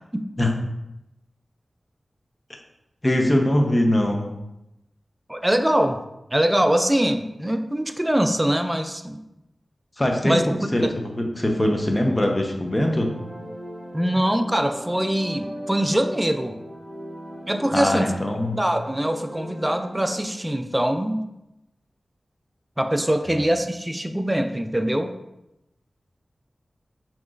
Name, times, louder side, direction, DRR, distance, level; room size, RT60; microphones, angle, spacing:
voice 1, 3.0-4.3 10.0-10.9 11.2-13.1 17.7-18.6 23.3-23.4, left 1 dB, 25° left, 2 dB, 0.8 m, -22 dB
voice 2, 5.3-6.0 6.3-9.2 10.2-10.4 10.8-10.9 13.9-16.6 17.5-18.1 18.5-21.2 22.8-25.1, right 1 dB, 15° right, 7 dB, 0.4 m, -23 dB
sound 1, 12.4-20.4, equal, 5° left, 1.4 m, -39 dB
6.0 x 3.0 x 2.5 m, 0.90 s
cardioid pair, 45°, 0 cm